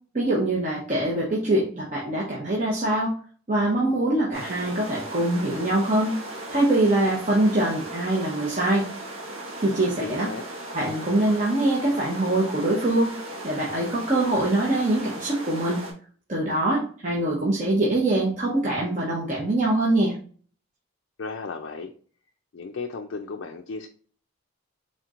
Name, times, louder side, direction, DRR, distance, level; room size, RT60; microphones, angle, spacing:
voice 1, 0.1-3.2 3.5-6.2 6.5-8.9 9.6-10.3 10.7-13.1 13.4-15.8 16.3-20.2, right 1 dB, 35° right, -4 dB, 0.8 m, -23 dB
sound 1, 4.3-15.9, right 1 dB, 85° right, 1.3 m, -37 dB
voice 2, 10.0-10.4 21.2-21.9 22.5-23.9, left 4 dB, 65° left, 3 dB, 0.4 m, -34 dB
4.4 x 3.6 x 2.4 m, 0.43 s
head